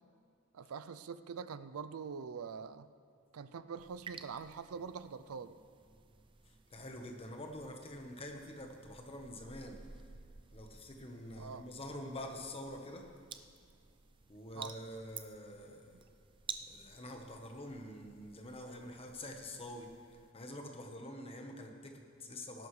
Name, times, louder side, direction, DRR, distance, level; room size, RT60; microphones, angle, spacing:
voice 1, 0.5-2.9 3.3-5.6 11.4-11.7 14.5-14.7, right 6 dB, 85° right, 14 dB, 0.5 m, -44 dB
sound 1, 3.8-20.3, right 6 dB, 25° right, 0.4 m, -53 dB
voice 2, 6.7-9.8 10.5-13.1 14.3-15.9 16.7-19.9 20.3-22.7, left 1 dB, 25° left, 3 dB, 1.1 m, -46 dB
18.5 x 11.5 x 3.3 m, 2.2 s
head